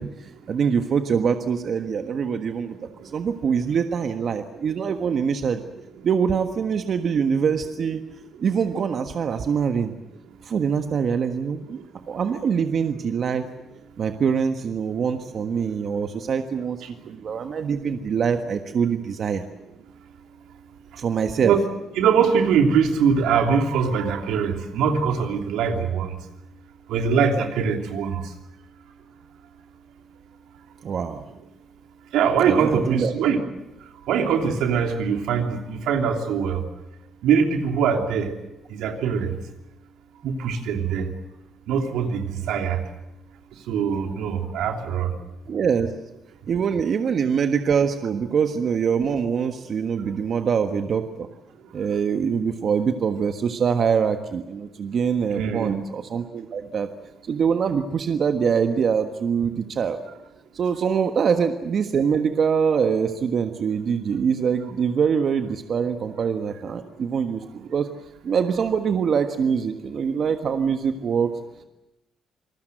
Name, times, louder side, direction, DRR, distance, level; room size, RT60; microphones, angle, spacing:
voice 1, 0.0-2.7 3.1-5.6 6.0-8.0 8.4-9.9 10.4-11.8 12.1-13.4 14.0-19.4 21.0-21.5 30.8-31.2 32.4-33.1 45.5-45.9 46.5-51.3 51.7-56.9 57.3-60.0 60.5-67.9 68.2-71.3, right 6 dB, 55° right, 6 dB, 1.5 m, -24 dB
voice 2, 2.8-3.2 11.8-11.9 16.8-17.2 20.9-21.0 21.4-21.6 22.0-26.2 26.9-28.3 32.1-33.4 33.8-36.7 37.2-38.3 38.7-39.4 40.2-41.1 41.7-42.8 43.7-45.1 55.3-55.8, right 6 dB, 90° right, 4 dB, 3.0 m, -23 dB
27.5 x 19.5 x 7.9 m, 0.93 s
cardioid pair, 90°, 0 cm